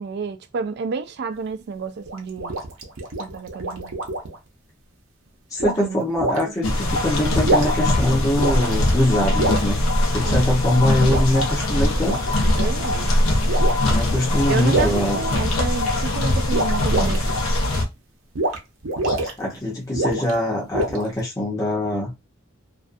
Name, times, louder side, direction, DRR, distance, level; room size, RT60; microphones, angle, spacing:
voice 1, 0.0-2.6 3.2-4.0 5.8-6.0 6.7-6.8 10.2-10.5 12.6-13.1 14.5-17.3, right 5 dB, 55° right, 0.3 m, -30 dB
sound 1, 2.0-4.4 5.6-5.8 6.2-6.4 7.3-7.9 8.4-8.9 9.4-9.7 11.0-11.3 11.9-12.7 13.5-13.8 14.7-15.8 16.5-17.4 18.3-18.6 18.8-19.3 19.9-20.3 20.7-21.2, right 2 dB, 75° right, 0.7 m, -25 dB
voice 2, 5.5-9.8 10.1-12.2 13.8-15.2 19.0-22.1, left 1 dB, 15° left, 0.7 m, -23 dB
sound 2, 6.6-17.8, left 1 dB, 90° left, 0.7 m, -21 dB
2.5 x 2.2 x 2.5 m
head